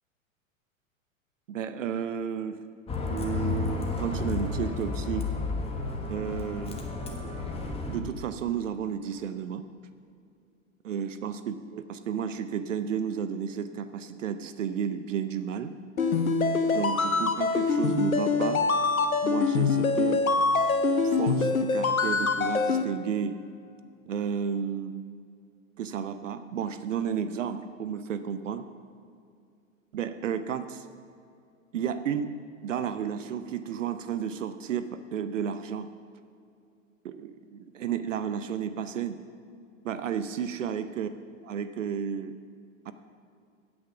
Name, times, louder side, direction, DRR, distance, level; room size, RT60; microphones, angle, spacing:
voice 1, 1.5-2.6 3.1-5.3 6.1-6.8 7.9-9.6 10.8-15.7 16.7-18.6 19.2-20.2 21.0-23.3 24.1-24.9 25.8-28.7 29.9-30.9 31.7-32.3 32.6-35.9 37.0-39.2 39.8-41.1 41.5-42.3 42.9-43.0, right 8 dB, 65° right, 11 dB, 0.6 m, -32 dB
Bus, 2.9-8.0, left 3 dB, 15° left, 1.1 m, -32 dB
sound 1, 16.0-22.8, left 4 dB, 85° left, 0.8 m, -24 dB
8.8 x 8.6 x 5.8 m, 2.4 s
figure-of-eight pair, 95°, 41 cm